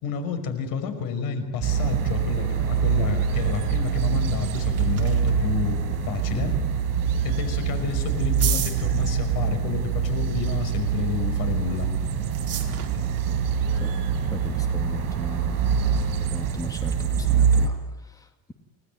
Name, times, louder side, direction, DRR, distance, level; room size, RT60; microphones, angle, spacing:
voice 1, 0.0-5.8 6.1-6.5 7.2-11.9, left 6 dB, 80° left, 8 dB, 5.8 m, -30 dB
sound 1, 1.6-17.7, right 7 dB, 70° right, 6.4 m, -24 dB
sound 2, 4.3-16.9, right 10 dB, 45° right, 4.6 m, -40 dB
voice 2, 14.3-15.6 16.3-18.5, equal, 10° left, 6 dB, 2.2 m, -37 dB
30.0 x 19.5 x 9.4 m, 1.1 s
cardioid pair, 165°, 35 cm